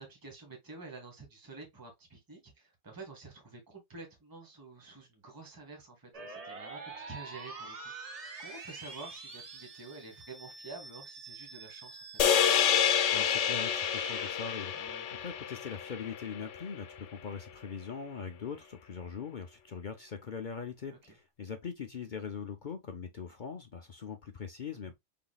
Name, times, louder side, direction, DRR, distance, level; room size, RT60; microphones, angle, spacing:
voice 1, 0.0-12.0 14.7-15.1 20.9-21.0 24.9-25.0, right 3 dB, 15° right, 1.4 m, -49 dB
sound 1, 6.1-14.3, right 3 dB, 35° right, 0.9 m, -46 dB
sound 2, 12.2-16.6, left 9 dB, 75° left, 1.0 m, -28 dB
voice 2, 13.1-14.7 15.2-24.9, left 6 dB, 50° left, 0.7 m, -41 dB
5.9 x 3.8 x 2.3 m
omnidirectional pair, 1.2 m